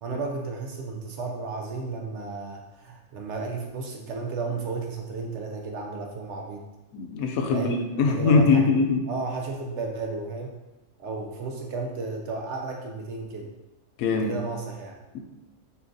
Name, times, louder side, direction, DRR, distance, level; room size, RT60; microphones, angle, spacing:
voice 1, 0.0-6.6 7.5-8.6 9.1-10.5 11.0-13.5 14.2-15.0, right 4 dB, 65° right, 1 dB, 0.8 m, -33 dB
voice 2, 6.9-9.0 14.0-14.4, left 4 dB, 85° left, 3 dB, 1.1 m, -22 dB
6.8 x 2.4 x 2.6 m, 1.1 s
omnidirectional pair, 1.5 m